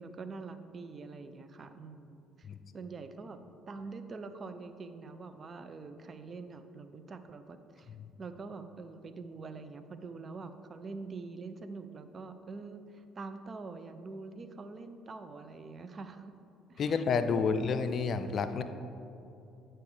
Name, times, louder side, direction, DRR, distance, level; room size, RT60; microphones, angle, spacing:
voice 1, 0.0-2.5 2.7-3.4 3.7-7.9 8.2-16.3 16.7-17.7, right 4 dB, 40° right, 9 dB, 0.5 m, -45 dB
voice 2, 16.8-18.6, left 5 dB, 50° left, 10 dB, 0.4 m, -29 dB
8.5 x 4.4 x 4.9 m, 2.7 s
hypercardioid pair, 55°, 0 cm